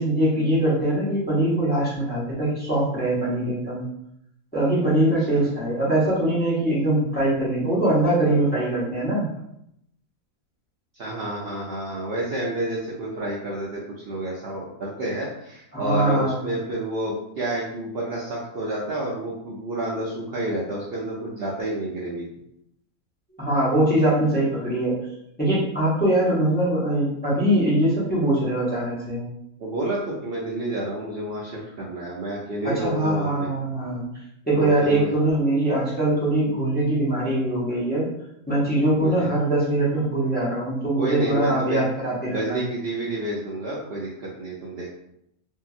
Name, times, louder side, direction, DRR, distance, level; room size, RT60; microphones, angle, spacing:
voice 1, 0.0-3.8 4.5-9.2 15.7-16.4 23.4-25.0 25.4-29.2 32.6-34.1 34.5-38.0 38.5-42.6, right 1 dB, 10° left, -9 dB, 0.8 m, -22 dB
voice 2, 10.9-22.2 29.6-33.5 34.5-35.1 39.0-39.3 41.0-41.8 42.3-44.9, right 1 dB, 80° right, -5 dB, 0.5 m, -29 dB
2.8 x 2.7 x 2.4 m, 0.77 s
omnidirectional pair, 1.7 m